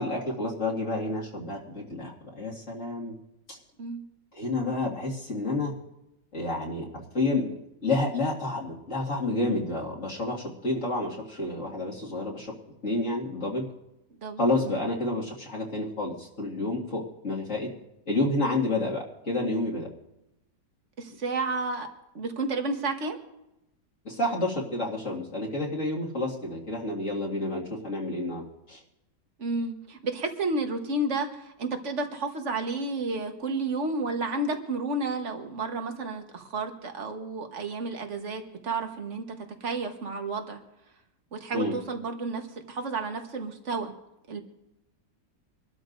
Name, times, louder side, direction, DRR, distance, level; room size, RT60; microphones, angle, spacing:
voice 1, 0.0-3.1 3.5-3.6 4.4-5.7 6.3-7.5 7.8-12.5 12.8-13.7 14.4-17.7 18.1-19.9 24.0-28.8 41.5-41.8, left 2 dB, 45° left, -4 dB, 2.4 m, -29 dB
voice 2, 14.2-14.8 21.0-21.9 22.1-23.2 29.4-39.2 39.6-40.6 41.3-43.9 44.3-44.4, right 3 dB, 45° right, 5 dB, 1.5 m, -31 dB
26.0 x 13.0 x 2.6 m, 0.88 s
omnidirectional pair, 1.9 m